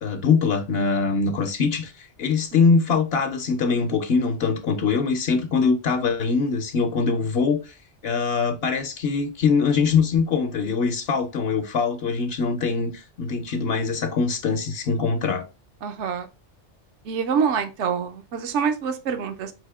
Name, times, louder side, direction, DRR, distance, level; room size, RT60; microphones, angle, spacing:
voice 1, 0.0-7.7 8.0-15.4, left 5 dB, 60° left, 0.9 m, -23 dB
voice 2, 15.8-16.3 17.1-19.5, right 6 dB, 80° right, 1.0 m, -25 dB
5.5 x 2.7 x 3.4 m
omnidirectional pair, 1.2 m